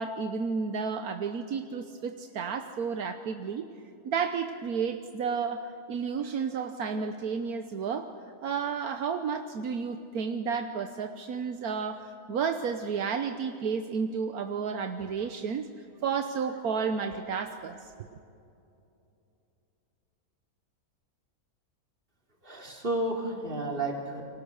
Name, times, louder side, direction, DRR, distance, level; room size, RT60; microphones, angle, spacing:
voice 1, 0.0-3.7 4.0-8.1 8.4-15.7 16.0-18.1, right 6 dB, 75° right, 7 dB, 1.4 m, -32 dB
voice 2, 22.4-24.2, right 1 dB, 35° right, 0 dB, 3.9 m, -31 dB
29.0 x 24.5 x 6.5 m, 2.7 s
omnidirectional pair, 1.6 m